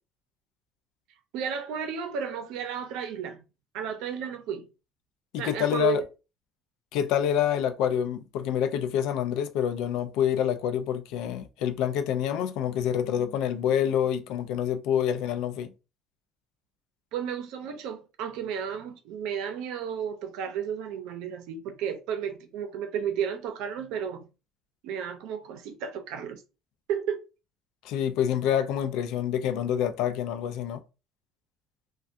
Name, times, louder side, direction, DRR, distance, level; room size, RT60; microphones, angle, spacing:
voice 1, 1.3-3.4 3.7-4.7 5.4-6.0 17.1-24.3 24.8-26.4 26.9-27.3, right 8 dB, 70° right, 0.6 m, -33 dB
voice 2, 5.3-6.0 6.9-15.7 27.8-30.8, left 9 dB, 70° left, 0.4 m, -27 dB
3.3 x 2.3 x 2.6 m
cardioid pair, 155°, 0 cm